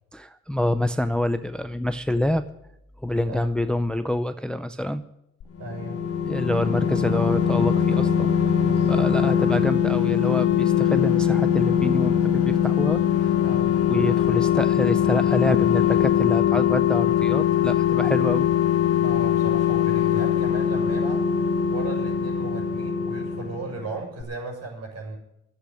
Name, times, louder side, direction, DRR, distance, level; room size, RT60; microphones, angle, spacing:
voice 1, 0.1-2.4 3.0-5.0 6.3-8.3 8.9-13.3 13.9-18.5, left 1 dB, 5° left, 11 dB, 0.6 m, -26 dB
sound 1, 5.4-23.9 24.2-24.3, left 9 dB, 50° left, 1.5 m, -22 dB
voice 2, 5.6-6.1 8.5-9.3 13.4-13.8 19.0-25.2, right 2 dB, 60° right, 1 dB, 6.4 m, -36 dB
11.5 x 8.2 x 10.0 m, 0.83 s
cardioid pair, 90°, 30 cm